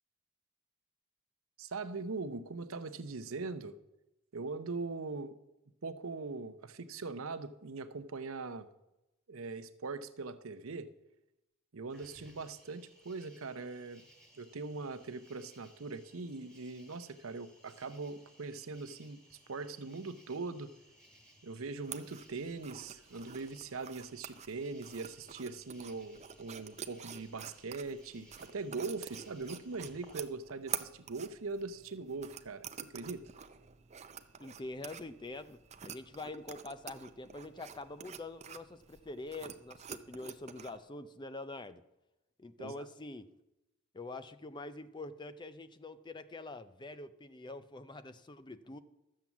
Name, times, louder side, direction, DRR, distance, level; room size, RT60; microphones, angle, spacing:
voice 1, 1.6-3.8 4.3-5.4 5.8-8.7 9.3-10.9 11.7-14.0 14.3-20.7 21.4-33.2 42.6-42.8, right 3 dB, 65° right, 11 dB, 0.7 m, -41 dB
Cricket, 11.9-30.2, equal, 5° left, 2.2 m, -62 dB
sound 1, 21.8-40.8, right 8 dB, 30° right, 0.6 m, -48 dB
voice 2, 34.4-41.8 42.4-43.3 43.9-48.8, left 2 dB, 20° left, 12 dB, 0.5 m, -45 dB
12.5 x 7.5 x 7.1 m, 0.94 s
head